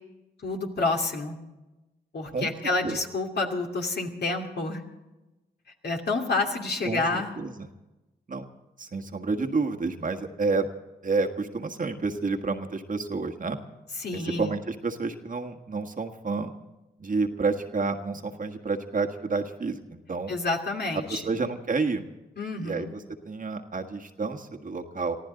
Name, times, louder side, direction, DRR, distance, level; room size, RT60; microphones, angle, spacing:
voice 1, 0.4-1.4 2.1-4.8 5.8-7.4 14.0-14.5 20.3-21.3 22.4-22.9, left 3 dB, 55° left, 1 dB, 2.7 m, -29 dB
voice 2, 6.8-7.7 8.3-8.4 8.8-10.7 11.0-13.6 14.1-16.5 17.0-20.3 20.9-22.1 22.6-22.9 23.2-25.2, right 4 dB, 45° right, 4 dB, 1.6 m, -29 dB
23.5 x 14.5 x 3.9 m, 1.1 s
supercardioid pair, 45°, 20 cm